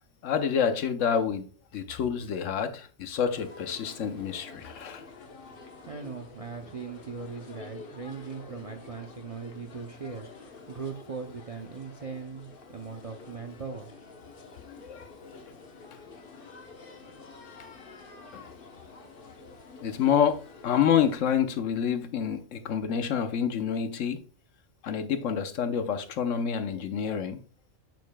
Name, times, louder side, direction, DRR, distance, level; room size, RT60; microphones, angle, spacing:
voice 1, 0.2-1.4 1.7-5.0 14.8-15.4 18.3-18.4 19.8-24.2 24.8-27.4, left 8 dB, 75° left, 1.1 m, -28 dB
sound 1, 3.3-21.1, left 4 dB, 45° left, 1.1 m, -48 dB
voice 2, 5.9-13.9, right 5 dB, 45° right, 0.4 m, -39 dB
8.2 x 6.5 x 2.2 m
omnidirectional pair, 1.3 m